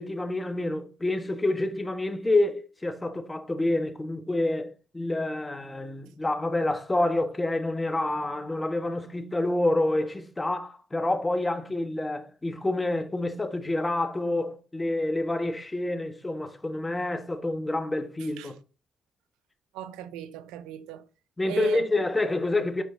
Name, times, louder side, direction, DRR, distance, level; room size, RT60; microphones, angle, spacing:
voice 1, 0.0-18.5 21.4-22.8, left 2 dB, 20° left, 1.5 m, -28 dB
voice 2, 18.2-18.5 19.7-21.1 21.5-21.8, right 12 dB, 85° right, 0.6 m, -37 dB
8.8 x 5.0 x 3.9 m
supercardioid pair, 55°, 0 cm